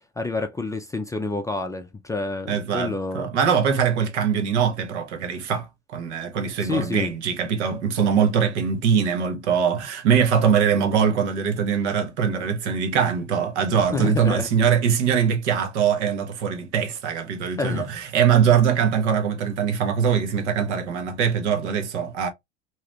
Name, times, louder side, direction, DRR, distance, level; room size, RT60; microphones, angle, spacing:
voice 1, 0.0-3.3 6.6-7.1 13.9-14.5 17.6-17.9, left 3 dB, 10° left, 0.4 m, -28 dB
voice 2, 2.5-22.3, right 7 dB, 80° right, 1.1 m, -22 dB
2.9 x 2.4 x 3.2 m
supercardioid pair, 105°, 34 cm